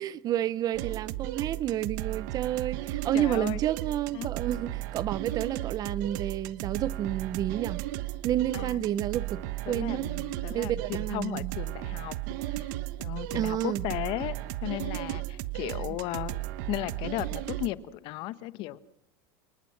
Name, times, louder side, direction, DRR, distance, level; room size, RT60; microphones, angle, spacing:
voice 1, 0.0-7.8 8.2-10.1 10.5-11.5 13.3-13.8 15.6-15.7, right 11 dB, 40° right, 0.9 m, -30 dB
sound 1, 0.7-17.7, right 16 dB, 70° right, 1.2 m, -35 dB
voice 2, 3.1-3.6 4.1-4.3 8.5-8.8 9.7-12.1 12.5-12.7 13.0-14.3 14.6-16.4 16.7-18.8, left 16 dB, 55° left, 1.4 m, -35 dB
29.5 x 19.5 x 6.0 m
supercardioid pair, 130°, 10 cm